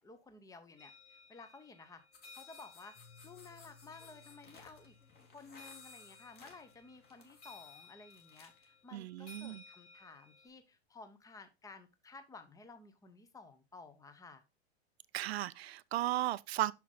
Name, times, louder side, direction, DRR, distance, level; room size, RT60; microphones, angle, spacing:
voice 1, 0.0-2.0 2.3-3.0 3.2-4.9 5.3-14.4, left 4 dB, 10° left, 1.0 m, -54 dB
sound 1, 0.8-10.5, left 4 dB, 85° left, 4.9 m, -59 dB
sound 2, 2.1-8.7, left 4 dB, 30° left, 2.4 m, -60 dB
Piano, 2.9-8.6, left 5 dB, 60° left, 2.3 m, -65 dB
voice 2, 8.9-9.6 15.1-16.7, right 14 dB, 70° right, 0.6 m, -35 dB
6.3 x 5.9 x 3.9 m
hypercardioid pair, 105°, 33 cm